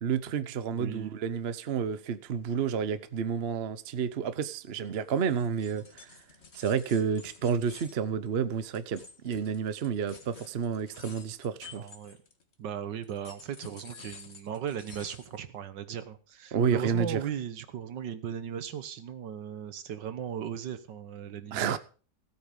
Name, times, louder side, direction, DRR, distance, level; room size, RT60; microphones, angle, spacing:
voice 1, 0.0-6.2 6.5-11.9 16.5-17.2 21.5-21.8, right 7 dB, 50° right, 0.8 m, -30 dB
voice 2, 0.7-1.2 11.7-12.2 12.6-21.8, right 9 dB, 75° right, 1.7 m, -37 dB
sound 1, 5.1-12.5 13.0-15.4, left 4 dB, 40° left, 1.8 m, -51 dB
16.5 x 8.6 x 5.3 m
omnidirectional pair, 2.0 m